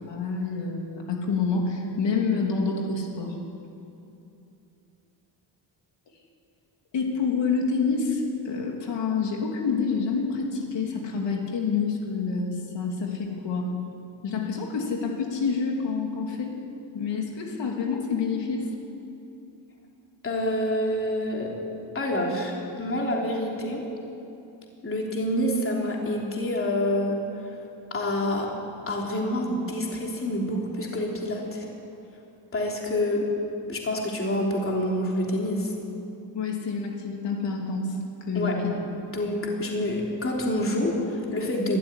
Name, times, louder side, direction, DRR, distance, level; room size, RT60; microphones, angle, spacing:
voice 1, 0.1-3.4 6.9-13.7 14.2-16.6 16.9-18.7 36.3-38.0 38.3-38.8, left 5 dB, 65° left, 0 dB, 3.2 m, -28 dB
voice 2, 20.2-21.5 21.9-23.8 24.8-27.2 27.4-27.5 27.9-28.5 28.9-31.7 32.5-33.3 33.7-35.7 38.3-38.6 38.9-41.8, left 1 dB, 30° left, -1 dB, 3.3 m, -27 dB
24.5 x 13.0 x 10.0 m, 2.8 s
wide cardioid pair, 165°, 45 cm